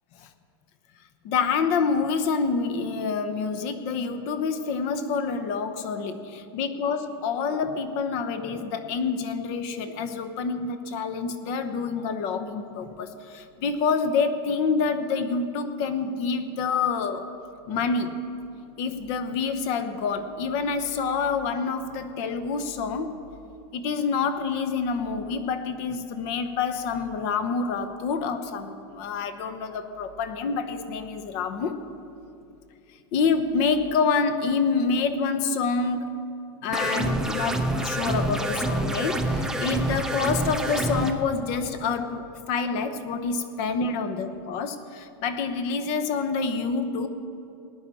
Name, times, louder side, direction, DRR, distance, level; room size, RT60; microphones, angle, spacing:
voice 1, 1.2-17.3 17.7-18.3 18.8-23.2 23.7-31.8 33.1-36.2 36.6-47.1, left 5 dB, 45° left, 9 dB, 0.9 m, -27 dB
sound 1, 36.7-41.1, right 2 dB, 5° right, 0.6 m, -27 dB
19.0 x 10.0 x 4.2 m, 2.6 s
supercardioid pair, 160°, 13 cm